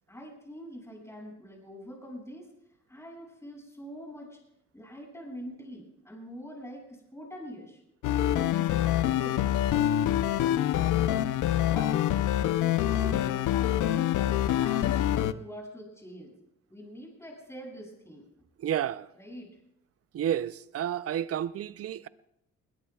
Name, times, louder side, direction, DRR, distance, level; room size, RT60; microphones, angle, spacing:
voice 1, 0.1-2.5 2.9-4.4 4.7-7.8 8.5-9.6 10.1-11.3 11.6-12.0 12.3-16.3 16.7-18.3 19.2-19.5, equal, 10° left, 7.0 m, -45 dB
sound 1, 8.0-15.3, left 12 dB, 90° left, 0.7 m, -26 dB
voice 2, 18.6-19.1 20.1-22.1, right 10 dB, 50° right, 0.6 m, -31 dB
21.5 x 20.5 x 2.4 m
cardioid pair, 90°, 30 cm